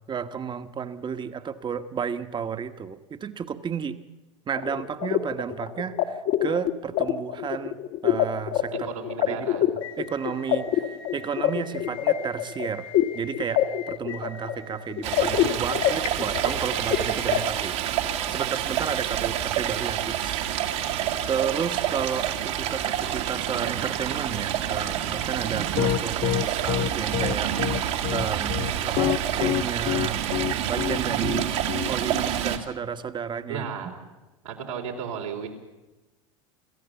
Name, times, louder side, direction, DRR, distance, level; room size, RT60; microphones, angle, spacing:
voice 1, 0.1-4.0 4.5-7.8 8.0-8.9 9.3-9.5 10.0-12.9 13.1-17.8 18.3-20.9 21.3-30.3 30.6-31.5 31.8-33.7, right 7 dB, 30° right, 10 dB, 1.3 m, -32 dB
sound 1, 4.6-17.4, left 11 dB, 60° left, 1.8 m, -27 dB
voice 2, 8.8-9.6 15.5-15.7 33.5-34.0 34.4-35.5, right 7 dB, 85° right, 0 dB, 3.9 m, -34 dB
Stream, 15.0-32.6, right 10 dB, 70° right, 2.3 m, -28 dB
Piano, 25.8-32.2, left 13 dB, 45° left, 0.6 m, -26 dB
27.0 x 14.5 x 7.1 m, 1.1 s
hypercardioid pair, 90°, 16 cm